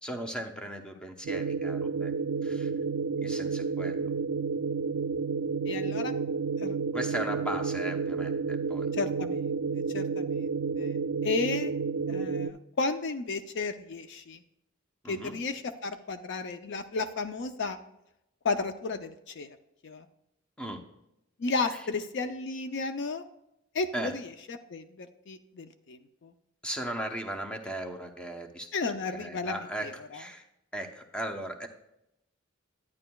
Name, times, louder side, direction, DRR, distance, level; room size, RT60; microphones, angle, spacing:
voice 1, 0.0-2.1 2.4-2.7 3.2-4.1 6.9-8.9 15.0-15.4 20.6-20.8 21.7-21.8 23.9-24.1 26.6-30.4 30.7-31.7, right 1 dB, 5° left, 4 dB, 0.8 m, -37 dB
sound 1, 1.2-12.5, right 5 dB, 80° right, 0.4 m, -31 dB
voice 2, 5.7-6.1 6.6-6.8 8.9-9.5 9.9-10.5 10.8-11.0 11.2-11.7 12.1-14.4 15.1-17.8 18.4-19.6 19.8-20.0 21.4-23.2 23.7-26.3 28.7-30.2, left 3 dB, 60° left, 9 dB, 0.5 m, -33 dB
11.0 x 9.6 x 2.3 m, 0.84 s
head